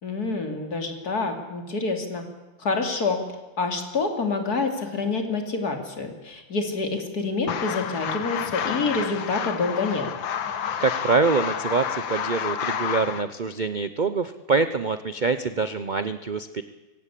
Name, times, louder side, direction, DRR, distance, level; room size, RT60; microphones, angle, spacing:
voice 1, 0.0-2.2 2.6-3.2 3.6-10.1, left 3 dB, 55° left, 5 dB, 3.3 m, -27 dB
sound 1, 7.5-13.2, left 8 dB, 85° left, 2.0 m, -29 dB
voice 2, 10.8-16.6, right 4 dB, 70° right, 11 dB, 0.4 m, -25 dB
24.0 x 17.0 x 8.4 m, 1.2 s
omnidirectional pair, 2.0 m